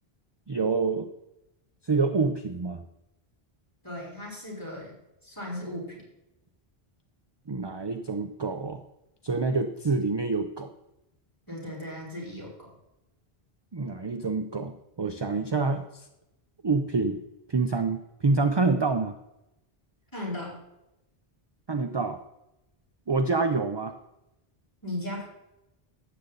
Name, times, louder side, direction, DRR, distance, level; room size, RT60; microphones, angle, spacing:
voice 1, 0.5-1.1 1.8-2.8 7.5-8.8 9.2-10.7 13.7-16.1 16.6-17.2 17.5-19.1 21.7-22.2 23.1-23.9, right 4 dB, 35° right, 8 dB, 0.5 m, -27 dB
voice 2, 3.8-4.9 5.2-6.0 11.5-12.7 20.1-20.5 24.8-25.2, left 1 dB, 20° left, -3 dB, 4.2 m, -36 dB
12.0 x 8.5 x 3.9 m, 0.91 s
omnidirectional pair, 1.0 m